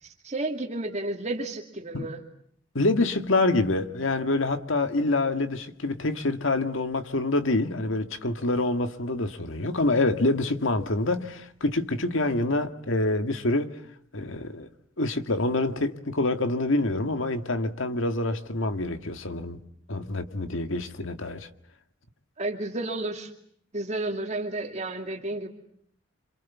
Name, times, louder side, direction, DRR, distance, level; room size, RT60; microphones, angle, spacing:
voice 1, 0.0-2.2 22.4-23.3 23.7-25.5, right 2 dB, 35° right, 2.5 m, -32 dB
voice 2, 2.7-13.7 14.1-14.7 15.0-19.6 19.9-21.5, left 2 dB, 75° left, 1.9 m, -26 dB
28.0 x 27.0 x 7.2 m
head